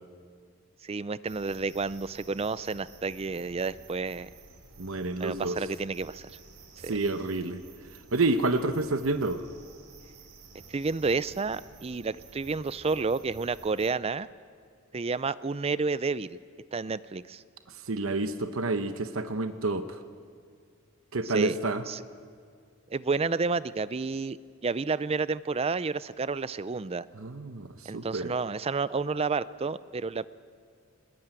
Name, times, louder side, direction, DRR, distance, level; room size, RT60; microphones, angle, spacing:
voice 1, 0.8-4.3 5.2-6.3 6.8-6.9 10.7-14.3 14.9-16.4 16.7-17.4 21.3-21.6 21.9-22.0 22.9-24.4 24.6-27.0 27.9-30.3, right 4 dB, 30° right, 16 dB, 0.5 m, -30 dB
sound 1, 1.3-13.9, right 3 dB, 85° right, 3.7 m, -52 dB
voice 2, 4.8-5.6 6.8-7.6 8.1-9.4 17.9-20.0 21.1-21.8 27.1-28.3, right 2 dB, 70° right, 8 dB, 1.0 m, -29 dB
20.5 x 19.5 x 9.0 m, 2.1 s
head